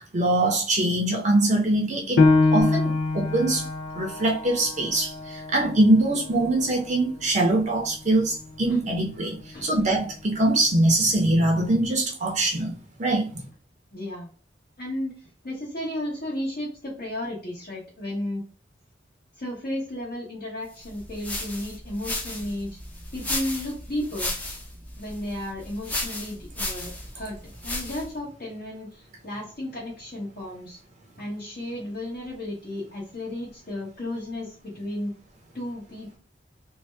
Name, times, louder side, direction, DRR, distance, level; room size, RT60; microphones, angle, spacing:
voice 1, 0.0-2.2 2.5-3.6 4.0-9.4 9.6-13.4, right 2 dB, 40° right, 0.6 m, -23 dB
Piano, 2.2-7.3 7.8-7.9 8.5-9.0, left 3 dB, 75° left, 0.5 m, -25 dB
voice 2, 13.9-14.3 14.8-18.4 19.4-22.8 23.1-24.3 25.0-30.8 31.2-35.1 35.5-36.2, left 1 dB, 50° left, 1.0 m, -33 dB
sound 1, 20.8-28.2, left 1 dB, 10° left, 0.6 m, -34 dB
2.7 x 2.2 x 3.2 m
head